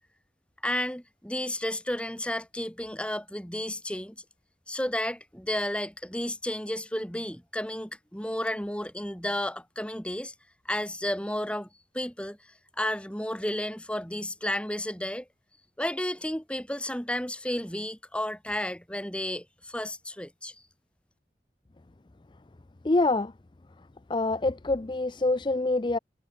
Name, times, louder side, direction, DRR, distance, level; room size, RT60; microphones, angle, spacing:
voice 1, 0.6-4.1 4.7-10.3 10.6-11.7 11.9-12.4 12.8-15.3 15.8-20.5, left 1 dB, 5° left, 3.4 m, -32 dB
voice 2, 22.8-23.3 24.1-26.0, left 2 dB, 25° left, 0.5 m, -25 dB
head